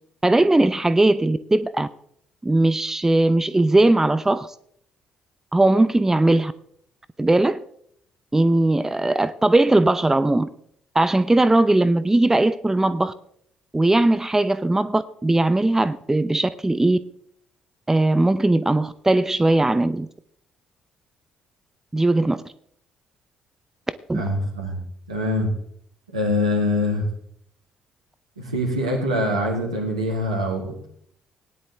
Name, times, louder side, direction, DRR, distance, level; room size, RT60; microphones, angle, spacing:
voice 1, 0.2-1.9 2.4-4.5 5.5-6.5 7.2-7.6 8.3-10.5 10.9-13.1 13.7-17.0 17.9-20.1 21.9-22.4 24.1-24.2, right 2 dB, 15° right, 0.6 m, -19 dB
voice 2, 24.1-24.8 25.1-25.5 26.1-27.1 28.4-30.9, left 1 dB, 85° right, 2.3 m, -24 dB
18.0 x 10.0 x 3.4 m
figure-of-eight pair, 45°, 3 cm